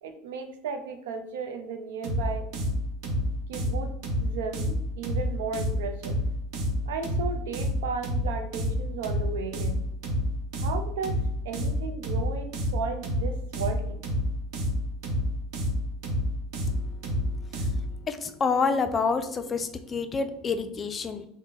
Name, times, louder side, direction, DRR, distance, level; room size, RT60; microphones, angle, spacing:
voice 1, 0.0-2.5 3.5-6.2 6.9-9.9 10.6-14.0, right 5 dB, 90° right, 6 dB, 0.5 m, -35 dB
sound 1, 2.0-17.9, equal, 65° right, 0.9 m, -29 dB
voice 2, 18.1-21.3, left 5 dB, 25° left, 9 dB, 0.4 m, -28 dB
3.5 x 2.1 x 3.9 m, 0.73 s
supercardioid pair, 115°, 0 cm